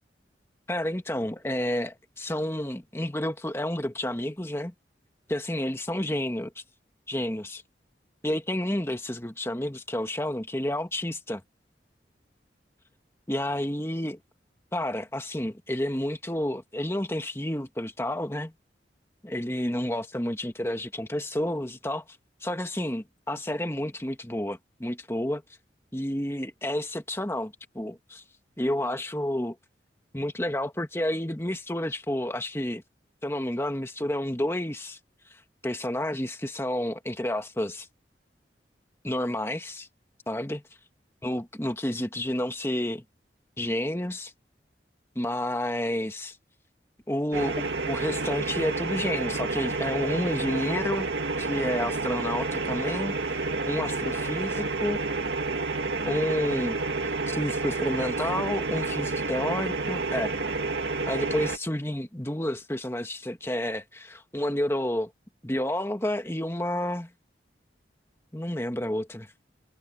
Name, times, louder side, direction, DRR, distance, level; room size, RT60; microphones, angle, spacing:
voice 1, 0.7-4.7 5.3-6.5 7.1-7.6 8.2-11.4 13.3-14.2 14.7-18.5 19.2-22.0 22.4-25.4 25.9-28.2 28.6-29.6 30.1-32.8 33.2-35.0 35.3-37.9 39.0-39.9 40.3-40.6 41.2-43.0 43.6-44.3 45.2-46.4 47.1-51.1 51.4-55.0 56.0-56.8 57.0-60.3 61.1-65.1 65.4-67.1 68.3-69.3, left 1 dB, 15° left, 1.8 m, -30 dB
sound 1, 47.3-61.6, right 3 dB, 85° right, 2.1 m, -29 dB
head